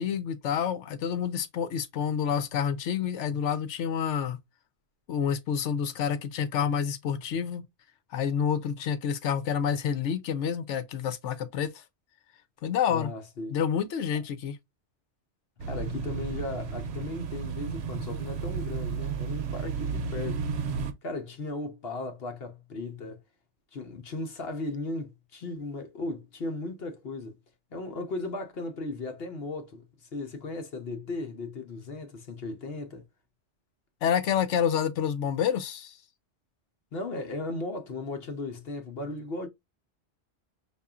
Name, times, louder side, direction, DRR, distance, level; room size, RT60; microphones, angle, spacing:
voice 1, 0.0-4.4 5.1-7.6 8.1-11.7 12.6-13.1 13.5-14.6 34.0-35.9, left 8 dB, 80° left, 1.0 m, -28 dB
voice 2, 12.9-13.6 15.6-20.5 21.0-23.2 23.7-27.4 27.7-33.1 36.9-39.5, left 2 dB, 60° left, 1.0 m, -36 dB
sound 1, 15.6-20.9, right 6 dB, 70° right, 0.9 m, -33 dB
5.2 x 2.4 x 2.3 m
omnidirectional pair, 1.2 m